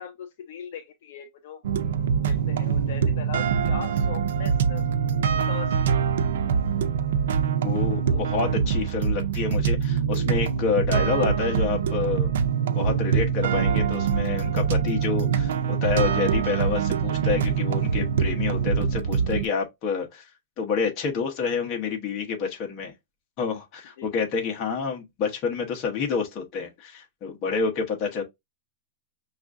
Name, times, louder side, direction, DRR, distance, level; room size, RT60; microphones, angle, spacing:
voice 1, 0.0-1.8 2.3-4.8 5.5-5.9 8.1-8.2 24.0-24.1, left 9 dB, 55° left, 0.6 m, -39 dB
sound 1, 1.6-19.5, right 7 dB, 75° right, 0.5 m, -24 dB
voice 2, 7.6-12.4 12.7-20.2 20.6-22.9 23.4-28.2, left 5 dB, 30° left, 0.9 m, -28 dB
5.8 x 2.5 x 2.4 m
supercardioid pair, 175°, 0 cm